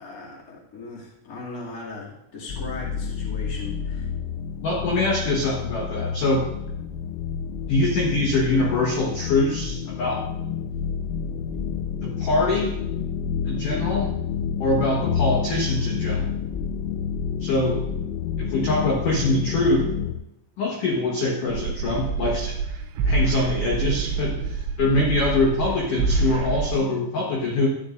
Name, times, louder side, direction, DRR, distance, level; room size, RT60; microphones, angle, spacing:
voice 1, 0.0-4.1, left 2 dB, 30° left, -4 dB, 1.5 m, -38 dB
sound 1, 2.5-20.2, left 7 dB, 85° left, 3.4 m, -29 dB
voice 2, 4.6-6.5 7.7-10.3 12.0-12.7 13.4-14.1 14.6-16.3 17.4-17.8 18.4-19.9 20.6-22.6 23.1-27.7, left 2 dB, 70° left, -3 dB, 2.0 m, -23 dB
sound 2, 21.5-26.7, right 4 dB, 85° right, 3.1 m, -26 dB
13.0 x 11.0 x 2.6 m, 0.83 s
omnidirectional pair, 5.9 m